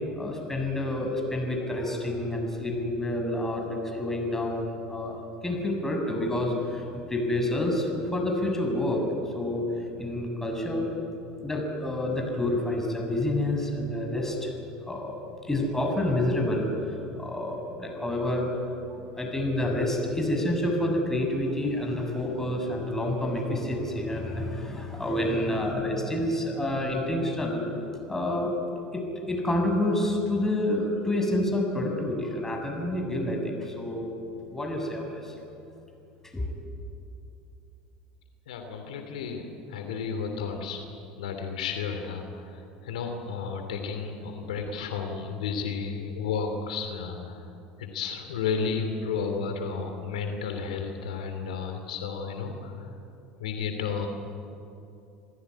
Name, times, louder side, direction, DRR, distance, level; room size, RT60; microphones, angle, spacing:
voice 1, 0.2-9.6 10.0-10.9 11.4-14.5 14.9-15.2 15.5-18.5 18.9-27.6 28.1-28.5 28.9-34.1 34.5-35.4 36.3-36.5, left 1 dB, 10° left, 2 dB, 7.4 m, -28 dB
voice 2, 38.5-40.8 41.2-47.4 47.8-52.9 53.4-54.1, left 5 dB, 85° left, 5 dB, 2.8 m, -32 dB
27.5 x 15.5 x 9.9 m, 2.8 s
hypercardioid pair, 80°, 4 cm